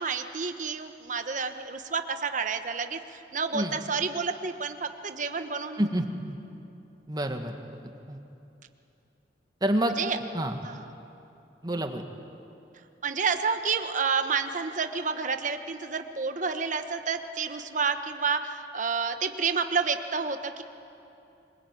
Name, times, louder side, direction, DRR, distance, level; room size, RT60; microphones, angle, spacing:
voice 1, 0.0-5.9 10.0-10.2 10.6-10.9 13.0-20.6, right 5 dB, 45° right, 7 dB, 1.2 m, -30 dB
voice 2, 5.8-6.4 7.1-7.5 8.1-8.2 9.6-9.9 10.3-10.6 11.6-12.0, right 1 dB, 25° right, 5 dB, 1.7 m, -28 dB
24.0 x 21.5 x 9.3 m, 2.8 s
head